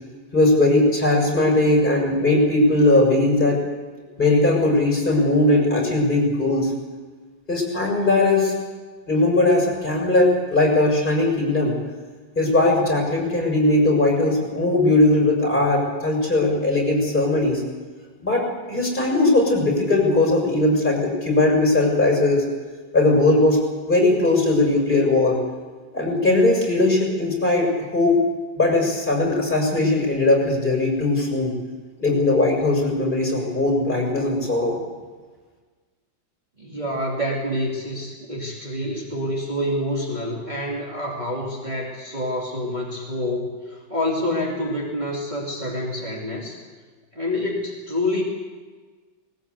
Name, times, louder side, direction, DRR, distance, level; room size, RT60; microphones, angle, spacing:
voice 1, 0.3-3.6 4.2-6.7 7.5-8.5 9.1-11.8 12.3-17.6 18.2-22.5 22.9-23.6 23.9-25.4 25.9-28.3 28.6-31.6 32.0-34.8, left 2 dB, 25° left, -1 dB, 6.6 m, -19 dB
voice 2, 36.6-46.6 47.1-48.2, left 1 dB, 20° right, -4 dB, 2.8 m, -27 dB
19.5 x 19.5 x 8.1 m, 1.4 s
omnidirectional pair, 2.0 m